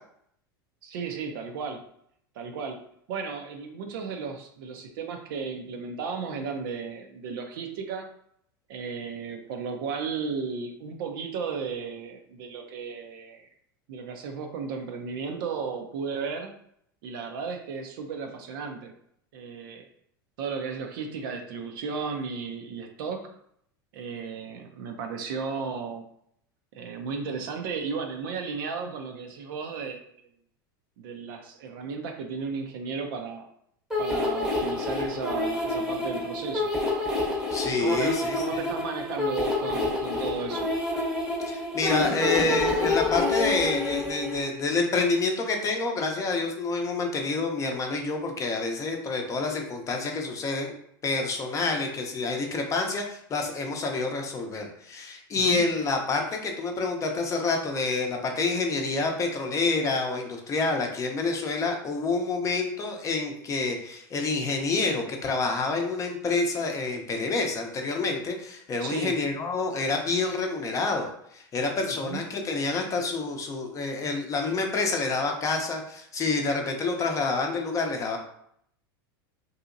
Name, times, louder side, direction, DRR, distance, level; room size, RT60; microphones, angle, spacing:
voice 1, 0.8-1.8 2.4-2.8 3.1-8.1 8.7-13.4 13.9-16.6 17.0-18.9 19.3-19.8 20.4-23.3 23.9-26.0 26.7-30.0 31.0-33.5 34.0-36.7 37.8-40.7 55.3-55.6 68.8-69.2 72.0-72.2, right 5 dB, 70° right, 4 dB, 0.5 m, -34 dB
sound 1, 33.9-44.5, left 2 dB, 5° right, 0.9 m, -28 dB
voice 2, 37.5-38.4 41.5-50.7 51.0-78.2, left 3 dB, 25° left, 2 dB, 0.6 m, -28 dB
2.8 x 2.7 x 2.5 m, 0.70 s
hypercardioid pair, 110°, 12 cm